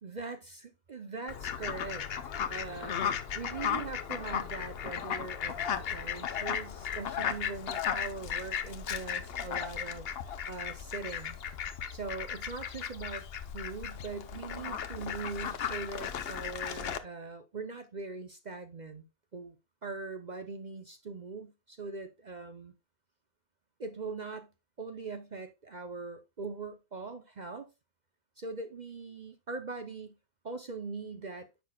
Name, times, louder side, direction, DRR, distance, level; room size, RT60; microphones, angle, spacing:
voice 1, 0.0-11.4 11.9-13.2 13.5-19.0 19.3-19.6 19.8-22.7 23.8-24.5 24.8-27.7 28.4-30.2 30.4-31.5, right 4 dB, 45° right, 0.6 m, -41 dB
Fowl, 1.3-17.0, left 8 dB, 55° left, 0.7 m, -36 dB
10.5 x 6.9 x 2.3 m
omnidirectional pair, 1.6 m